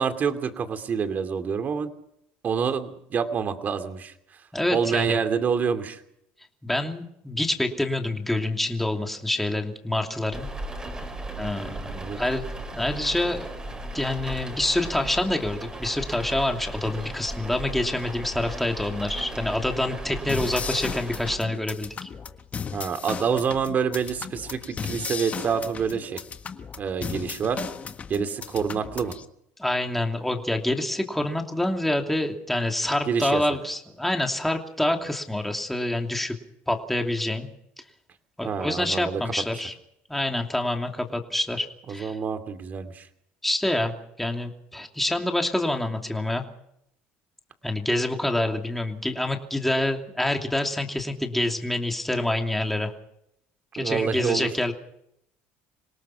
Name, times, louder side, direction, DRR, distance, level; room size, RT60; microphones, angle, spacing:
voice 1, 0.0-1.9 2.4-4.1 4.7-6.0 11.4-12.2 22.7-26.2 26.8-27.6 28.1-29.1 33.1-33.4 38.4-39.2 41.9-43.0 53.8-54.5, right 6 dB, 35° right, 8 dB, 2.6 m, -27 dB
voice 2, 4.5-5.2 6.6-10.5 11.4-12.4 12.7-13.5 13.9-22.1 29.6-36.4 36.7-37.5 38.4-39.7 40.1-42.2 43.4-43.9 44.2-46.4 47.6-52.9 53.7-54.7, left 1 dB, 5° left, 3 dB, 2.8 m, -27 dB
sound 1, 10.3-21.4, right 1 dB, 15° right, 5.1 m, -36 dB
sound 2, 20.3-29.3, left 6 dB, 30° left, 1.5 m, -36 dB
26.5 x 18.0 x 5.9 m, 0.75 s
cardioid pair, 120°, 5 cm